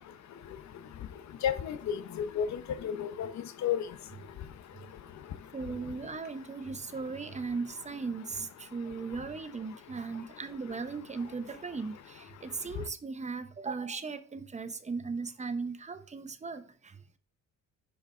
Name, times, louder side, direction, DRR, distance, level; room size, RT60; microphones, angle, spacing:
voice 1, 1.4-3.3 3.6-3.8, left 8 dB, 65° left, 0.8 m, -31 dB
voice 2, 5.5-17.0, right 4 dB, 25° right, 0.8 m, -37 dB
6.5 x 4.9 x 4.3 m
cardioid pair, 90°, 30 cm